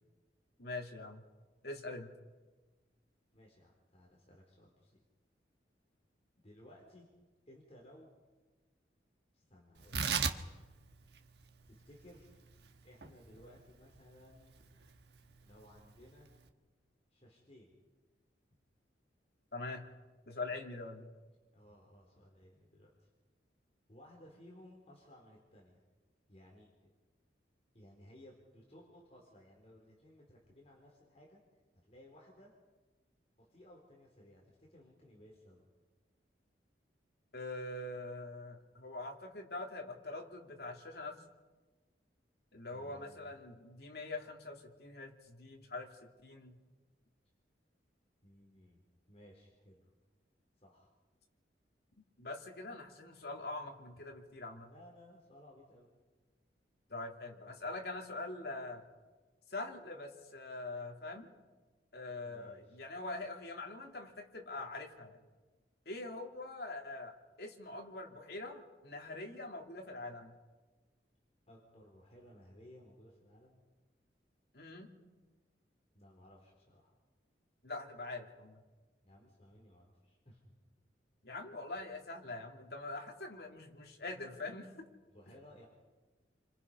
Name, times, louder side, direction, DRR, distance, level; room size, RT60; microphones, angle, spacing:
voice 1, 0.6-1.2 1.6-2.1 19.5-19.8 20.2-21.1 37.3-41.2 42.5-45.9 46.2-46.6 52.2-54.7 56.9-58.9 59.5-61.3 61.9-65.2 65.8-70.3 74.5-74.9 77.6-78.6 81.2-84.9, left 2 dB, 60° left, 1 dB, 3.0 m, -44 dB
voice 2, 3.3-5.0 6.4-7.1 7.5-8.1 9.3-10.3 11.7-12.3 12.8-14.6 15.4-16.3 17.1-17.8 21.5-23.1 23.9-25.8 26.3-26.7 27.7-31.4 31.8-32.5 33.4-35.6 42.7-43.5 48.2-48.8 49.1-49.9 50.6-50.9 53.9-54.0 54.5-55.9 62.2-62.8 71.5-73.6 75.9-76.9 79.0-80.7 85.1-85.7, left 1 dB, 35° left, -2 dB, 4.1 m, -59 dB
Tearing, 9.8-16.5, right 6 dB, 65° right, 1.4 m, -40 dB
29.5 x 25.0 x 5.6 m, 1.3 s
head